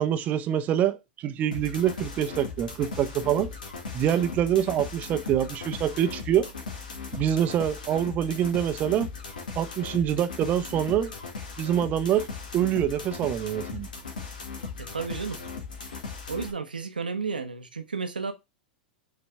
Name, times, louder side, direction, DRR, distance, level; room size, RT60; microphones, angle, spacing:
voice 1, 0.0-3.5 3.9-6.5 7.1-9.1 9.6-11.1 11.6-12.3 12.5-13.9, right 10 dB, 35° right, 0.9 m, -25 dB
sound 1, 1.5-16.5, left 4 dB, 70° left, 1.9 m, -38 dB
voice 2, 14.8-15.4 16.3-18.3, right 5 dB, 80° right, 1.0 m, -32 dB
7.0 x 3.9 x 3.4 m
figure-of-eight pair, 95°, 5 cm